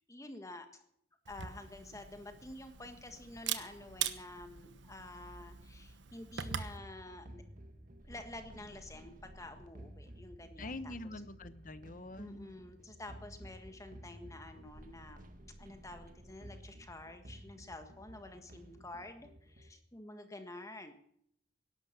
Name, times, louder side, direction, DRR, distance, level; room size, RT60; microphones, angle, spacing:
voice 1, 0.1-0.7 1.3-7.4 8.0-11.1 12.2-15.3 15.6-20.9, left 2 dB, 20° left, 7 dB, 1.6 m, -49 dB
Camera, 1.3-6.8, right 9 dB, 85° right, 1.2 m, -42 dB
sound 1, 6.4-19.7, right 1 dB, 50° right, 1.6 m, -53 dB
voice 2, 10.6-12.5, left 2 dB, 50° left, 13 dB, 1.0 m, -45 dB
18.0 x 12.0 x 6.0 m, 0.68 s
head